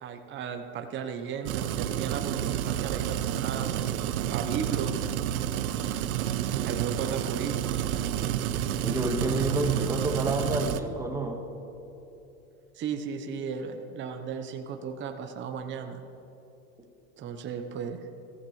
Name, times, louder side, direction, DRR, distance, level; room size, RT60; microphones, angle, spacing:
voice 1, 0.0-3.8 4.3-5.0 6.6-7.6 12.7-16.0 17.2-18.0, right 7 dB, 25° right, 6 dB, 0.9 m, -35 dB
sound 1, 1.5-10.8, right 11 dB, 75° right, 0.8 m, -30 dB
voice 2, 8.8-11.4, right 2 dB, 5° right, 2 dB, 1.5 m, -29 dB
15.0 x 14.5 x 3.2 m, 2.9 s
hypercardioid pair, 115°, 43 cm